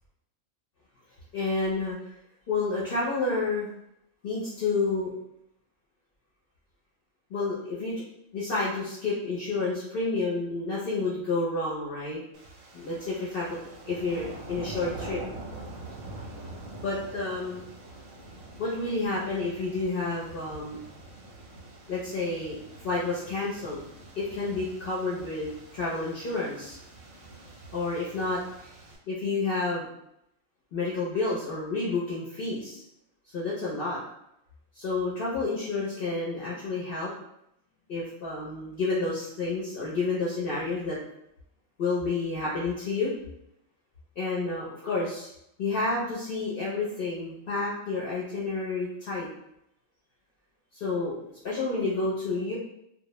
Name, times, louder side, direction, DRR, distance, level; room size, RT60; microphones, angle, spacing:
voice 1, 1.3-2.0 2.5-3.7 4.2-5.1 7.3-8.0 8.3-12.2 12.7-13.6 13.9-15.2 16.8-17.6 18.6-20.8 21.9-23.8 24.2-26.8 27.7-28.7 29.1-29.9 30.7-32.8 33.3-34.0 34.8-37.1 37.9-41.0 41.8-43.1 44.2-45.3 45.6-49.3 50.7-52.6, left 3 dB, 55° left, -7 dB, 0.7 m, -30 dB
sound 1, 12.3-29.0, right 2 dB, 80° right, 1.0 m, -45 dB
2.2 x 2.0 x 2.9 m, 0.78 s
omnidirectional pair, 1.4 m